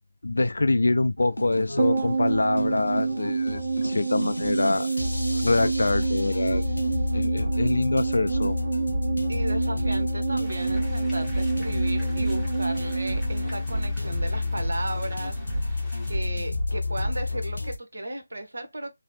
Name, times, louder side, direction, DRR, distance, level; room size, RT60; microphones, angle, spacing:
voice 1, 0.2-4.9 5.4-6.6 7.1-8.6, left 2 dB, 70° left, 0.4 m, -25 dB
sound 1, 1.2-17.8, left 2 dB, 85° left, 0.7 m, -30 dB
sound 2, 1.8-14.3 14.6-14.7, right 4 dB, 35° right, 0.4 m, -28 dB
voice 2, 9.3-18.9, right 1 dB, 65° right, 0.9 m, -35 dB
sound 3, 10.4-16.2, equal, ahead, 0.9 m, -48 dB
3.0 x 2.0 x 3.6 m
figure-of-eight pair, 155°, 0 cm